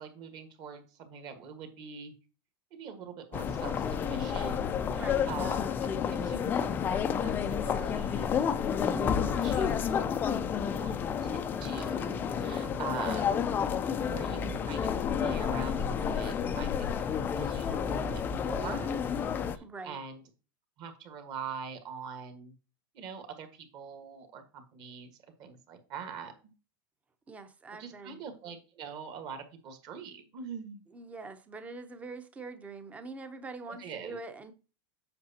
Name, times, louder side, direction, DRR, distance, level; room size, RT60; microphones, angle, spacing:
voice 1, 0.0-2.1 2.7-5.7 6.1-8.4 8.8-13.3 14.0-14.9 15.2-18.9 19.5-20.2 20.8-22.5 22.9-25.1 25.4-26.5 27.8-30.8 33.7-34.2, right 6 dB, 35° right, 1.5 m, -43 dB
sound 1, 3.3-19.6, left 7 dB, 15° left, 0.4 m, -30 dB
voice 2, 4.9-5.3 19.6-20.0 27.3-28.2 30.9-34.5, right 3 dB, 10° right, 0.7 m, -44 dB
7.7 x 6.6 x 2.8 m
supercardioid pair, 160°, 12 cm